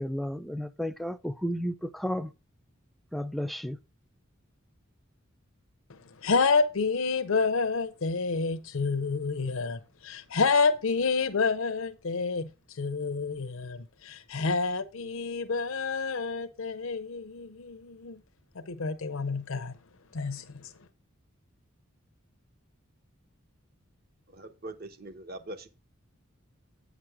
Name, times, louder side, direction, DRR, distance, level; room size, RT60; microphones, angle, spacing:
voice 1, 0.0-2.3 3.1-3.8, equal, ahead, 0.5 m, -32 dB
voice 2, 5.9-18.2 18.6-19.8 20.1-20.7, left 4 dB, 75° left, 0.7 m, -29 dB
voice 3, 24.3-25.7, right 2 dB, 45° right, 1.0 m, -42 dB
8.6 x 6.0 x 4.8 m
head